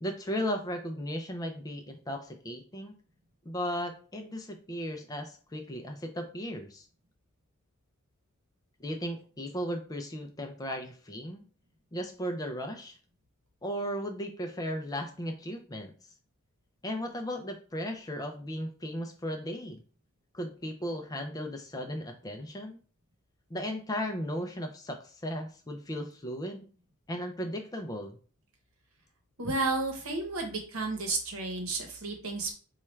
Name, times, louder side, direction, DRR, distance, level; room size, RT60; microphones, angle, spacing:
voice 1, 0.0-2.9 3.5-6.9 8.8-11.4 11.9-13.0 13.6-15.9 16.8-19.8 20.3-22.8 23.5-26.7 27.1-28.2, equal, 15° left, 4 dB, 0.4 m, -36 dB
voice 2, 29.4-32.5, right 3 dB, 70° right, 3 dB, 1.0 m, -32 dB
4.3 x 2.3 x 3.1 m, 0.40 s
head